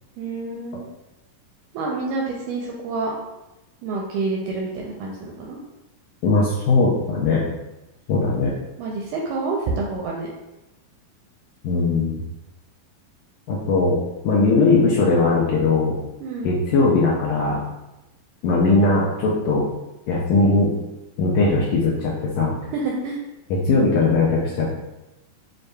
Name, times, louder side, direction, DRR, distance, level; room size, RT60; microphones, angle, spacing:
voice 1, 0.2-0.9 1.7-3.1 3.8-5.6 8.8-10.3 16.2-16.5 22.7-23.2, right 3 dB, 80° right, -2 dB, 1.9 m, -28 dB
voice 2, 6.2-7.4 8.1-8.5 11.6-12.2 13.5-15.9 16.4-17.6 18.4-19.7 20.1-20.8 21.2-22.5 23.5-24.8, left 3 dB, 80° left, -5 dB, 1.8 m, -19 dB
6.4 x 2.6 x 2.2 m, 0.96 s
omnidirectional pair, 4.1 m